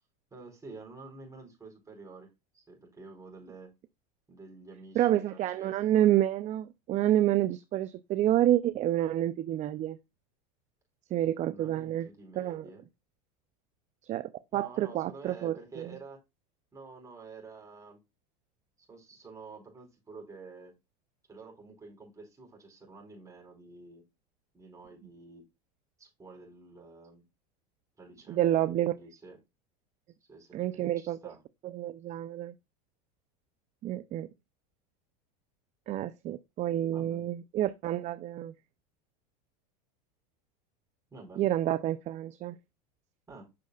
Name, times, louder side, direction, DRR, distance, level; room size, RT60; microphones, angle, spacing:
voice 1, 0.3-2.3 2.5-3.7 4.3-5.8 11.5-12.8 14.5-16.2 16.7-18.0 18.9-20.7 21.3-24.0 24.5-25.4 26.0-27.2 28.0-29.4 30.3-31.4 36.9-37.2 41.1-41.5 43.3-43.5, right 3 dB, 15° right, 4.9 m, -49 dB
voice 2, 5.0-10.0 11.1-12.1 12.4-12.6 14.0-15.9 28.3-28.9 30.5-31.2 31.6-32.5 33.8-34.3 35.9-38.5 41.4-42.6, right 13 dB, 35° right, 0.5 m, -28 dB
8.4 x 6.3 x 2.3 m
hypercardioid pair, 105°, 20 cm